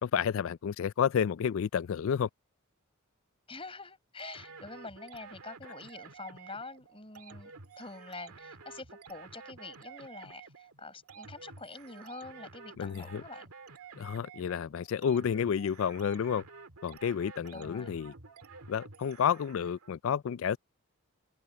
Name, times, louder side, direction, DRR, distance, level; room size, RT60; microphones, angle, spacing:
voice 1, 0.0-2.3 12.8-13.2 14.0-16.5 16.8-18.1 18.7-20.6, left 7 dB, 65° left, 0.3 m, -30 dB
voice 2, 3.5-13.5 17.5-17.9, left 3 dB, 25° left, 6.7 m, -46 dB
sound 1, 4.2-19.9, right 5 dB, 85° right, 2.0 m, -50 dB
head